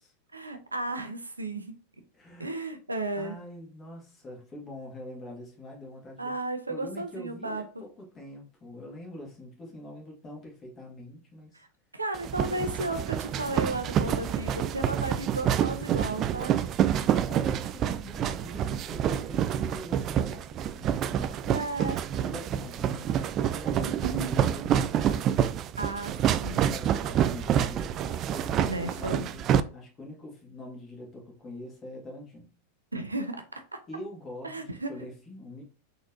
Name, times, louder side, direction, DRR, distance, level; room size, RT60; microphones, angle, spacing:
voice 1, 0.3-1.8 2.4-3.4 6.2-7.8 11.9-16.5 21.5-22.0 23.9-24.5 25.8-26.7 28.6-29.3 32.9-33.6 34.4-34.9, right 2 dB, 80° right, 0.6 m, -34 dB
voice 2, 2.1-2.6 3.1-6.3 6.7-11.6 17.3-21.4 21.8-25.2 26.7-29.4 29.7-32.5 33.9-35.6, left 1 dB, 20° left, 1.8 m, -44 dB
sound 1, 12.1-29.6, right 10 dB, 30° right, 0.3 m, -27 dB
4.1 x 4.0 x 2.6 m
figure-of-eight pair, 90°, 0 cm